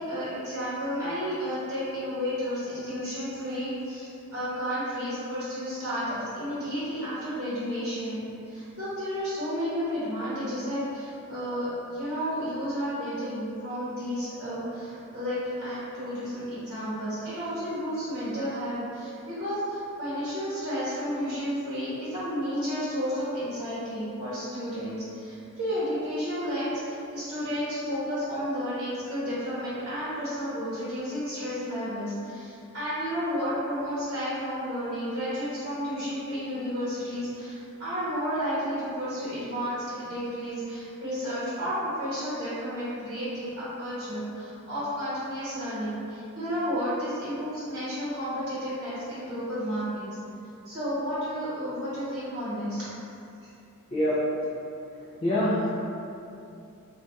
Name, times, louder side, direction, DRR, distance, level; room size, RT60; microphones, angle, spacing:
voice 1, 0.0-50.0 50.7-52.8, equal, 50° right, -11 dB, 0.8 m, -32 dB
voice 2, 53.9-54.5 55.2-55.7, equal, 25° left, -10 dB, 0.3 m, -25 dB
2.4 x 2.2 x 3.9 m, 2.7 s
head